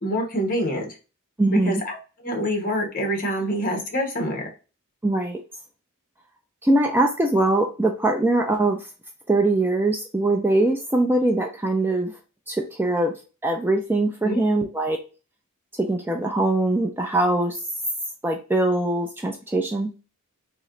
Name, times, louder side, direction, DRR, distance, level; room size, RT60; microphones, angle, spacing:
voice 1, 0.0-0.9 1.5-2.0 2.2-4.5 14.2-14.4, equal, 40° left, 2 dB, 1.2 m, -26 dB
voice 2, 1.4-1.8 5.0-5.4 6.6-8.9 9.3-12.2 12.5-13.1 13.4-15.0 15.8-17.6 18.2-19.9, right 2 dB, 10° right, 3 dB, 0.4 m, -22 dB
3.1 x 2.9 x 3.8 m, 0.33 s
head